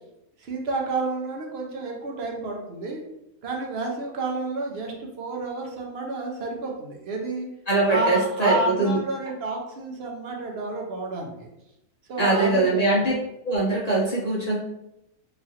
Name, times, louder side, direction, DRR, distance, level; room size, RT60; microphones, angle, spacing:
voice 1, 0.4-3.0 3.4-7.5 7.9-11.5 12.1-13.1, right 2 dB, 60° right, 0 dB, 0.7 m, -30 dB
voice 2, 7.7-9.0 12.2-13.1 13.4-14.6, right 2 dB, 55° left, -5 dB, 0.4 m, -22 dB
3.0 x 2.4 x 2.7 m, 0.87 s
omnidirectional pair, 1.5 m